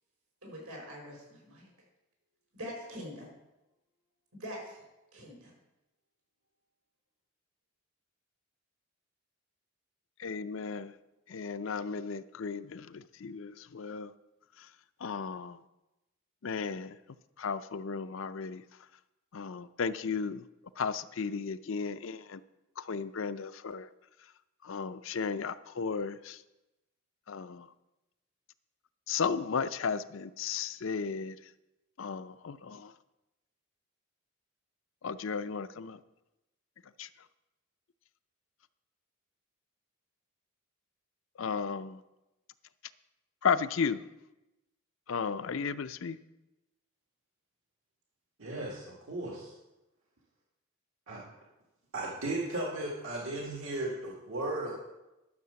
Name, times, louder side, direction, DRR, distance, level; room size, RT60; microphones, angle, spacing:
voice 1, 0.4-1.7 2.5-3.3 4.4-4.8 5.1-5.5, equal, 85° right, 5.1 m, -43 dB
voice 2, 10.2-10.9 11.3-14.1 15.0-15.6 16.4-17.0 17.4-18.6 19.3-20.4 20.8-22.4 22.8-23.9 24.6-26.4 27.3-27.7 29.1-31.4 32.0-32.9 35.0-36.0 37.0-37.1 41.4-42.0 43.4-44.0 45.1-46.2, left 5 dB, 60° left, 0.5 m, -34 dB
voice 3, 48.4-49.5 51.1-51.2 51.9-54.8, right 2 dB, 70° right, 2.0 m, -36 dB
12.0 x 6.6 x 6.9 m
head